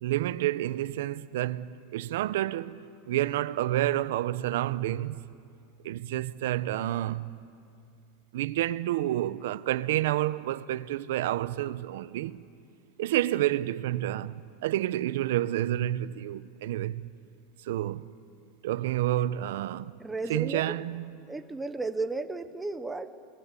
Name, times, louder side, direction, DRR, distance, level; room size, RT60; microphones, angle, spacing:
voice 1, 0.0-5.2 5.8-7.4 8.3-12.5 13.0-17.0 17.6-18.1 18.6-20.0 20.3-21.1, right 14 dB, 75° right, 0.8 m, -29 dB
voice 2, 20.0-20.6 21.3-23.1, right 3 dB, 10° right, 0.9 m, -33 dB
28.0 x 21.5 x 8.3 m
supercardioid pair, 140°, 0 cm